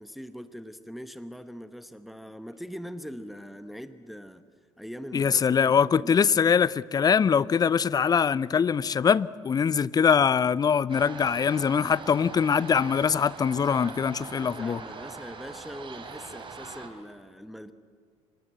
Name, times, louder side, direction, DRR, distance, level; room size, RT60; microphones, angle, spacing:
voice 1, 0.0-4.4 4.8-6.4 14.2-17.7, equal, ahead, 1.1 m, -42 dB
voice 2, 5.1-14.8, left 7 dB, 25° left, 0.6 m, -23 dB
sound 1, 10.9-16.9, right 4 dB, 30° right, 3.3 m, -42 dB
25.5 x 21.0 x 7.8 m
figure-of-eight pair, 55°, 16 cm